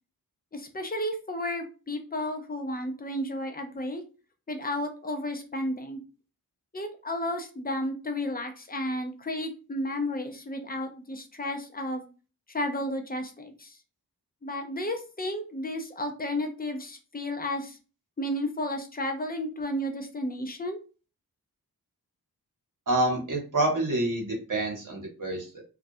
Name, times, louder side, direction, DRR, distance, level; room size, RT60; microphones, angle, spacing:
voice 1, 0.5-4.0 4.5-6.0 6.7-12.0 12.5-13.8 14.4-17.8 18.2-20.8, left 1 dB, 25° left, 5 dB, 0.5 m, -32 dB
voice 2, 22.9-25.6, right 1 dB, 55° right, 0 dB, 1.1 m, -27 dB
2.3 x 2.1 x 2.6 m, 0.34 s
cardioid pair, 55°, 38 cm